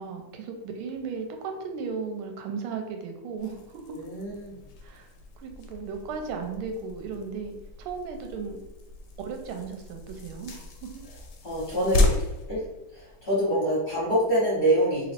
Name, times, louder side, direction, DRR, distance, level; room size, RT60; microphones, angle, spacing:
voice 1, 0.0-4.0 4.8-5.1 5.4-8.6 9.2-10.9, right 5 dB, 90° right, 4 dB, 1.5 m, -36 dB
sound 1, 3.4-13.5, left 2 dB, 70° left, 1.0 m, -33 dB
voice 2, 3.9-4.6 11.4-12.1 12.5-12.7 12.9-15.1, right 1 dB, 40° left, -7 dB, 0.8 m, -25 dB
3.0 x 3.0 x 4.3 m, 1.0 s
omnidirectional pair, 2.3 m